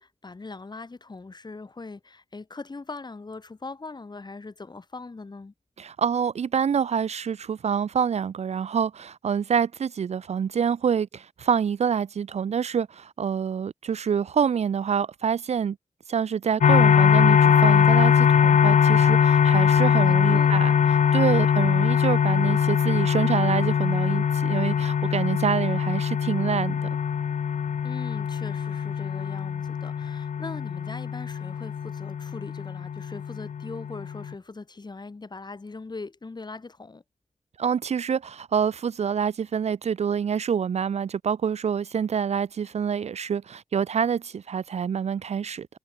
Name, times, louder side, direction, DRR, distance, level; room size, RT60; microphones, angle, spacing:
voice 1, 0.0-5.5 19.9-20.6 27.8-37.0, left 3 dB, 35° left, 7.0 m, -40 dB
voice 2, 5.8-15.8 16.1-20.7 21.1-26.9 37.6-45.7, right 7 dB, 60° right, 0.4 m, -26 dB
sound 1, 16.6-34.3, left 7 dB, 75° left, 0.7 m, -22 dB
wide cardioid pair, 130°, 13 cm